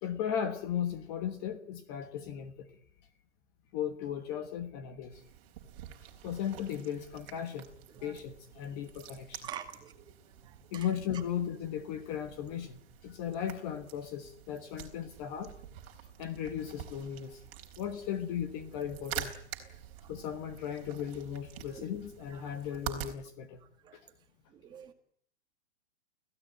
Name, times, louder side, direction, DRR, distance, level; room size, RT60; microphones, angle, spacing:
voice 1, 0.0-2.8 3.7-5.2 6.2-7.7 8.0-9.5 10.7-15.5 16.2-17.4 17.8-19.3 20.1-23.6 23.9-24.0, left 9 dB, 20° left, 9 dB, 1.3 m, -36 dB
sound 1, 5.1-23.1, right 11 dB, 30° right, 4.1 m, -47 dB
voice 2, 9.4-10.0 10.4-10.9 20.0-20.1 21.7-21.8 23.8-24.0 24.5-24.9, right 9 dB, 10° right, 5 dB, 2.1 m, -46 dB
29.0 x 16.5 x 9.1 m, 0.65 s
hypercardioid pair, 170°, 35 cm